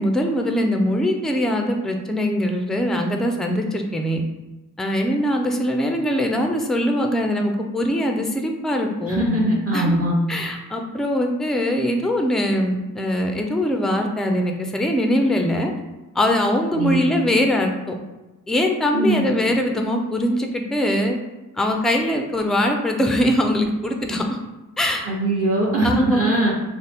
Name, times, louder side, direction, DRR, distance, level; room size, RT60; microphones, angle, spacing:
voice 1, 0.0-4.2 4.8-9.2 9.7-10.0 10.3-15.7 16.2-17.7 18.5-21.2 21.6-24.4 24.8-25.1 25.8-26.3, equal, ahead, 3 dB, 0.3 m, -22 dB
voice 2, 9.0-10.1 16.7-17.0 18.9-19.2 25.0-26.5, right 1 dB, 40° right, -3 dB, 0.9 m, -21 dB
2.7 x 2.0 x 3.3 m, 1.1 s
cardioid pair, 60°, 36 cm